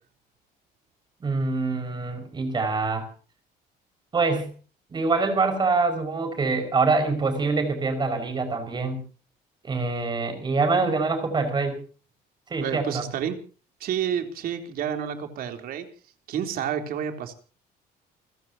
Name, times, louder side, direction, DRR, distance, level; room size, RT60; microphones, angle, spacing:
voice 1, 1.2-3.1 4.1-4.5 4.9-9.0 9.6-11.8 12.5-13.0, right 3 dB, 25° right, 8 dB, 5.6 m, -25 dB
voice 2, 12.6-13.4 13.8-15.9 16.3-17.3, right 9 dB, 60° right, 6 dB, 3.6 m, -29 dB
30.0 x 15.5 x 2.9 m, 0.38 s
cardioid pair, 150°, 17 cm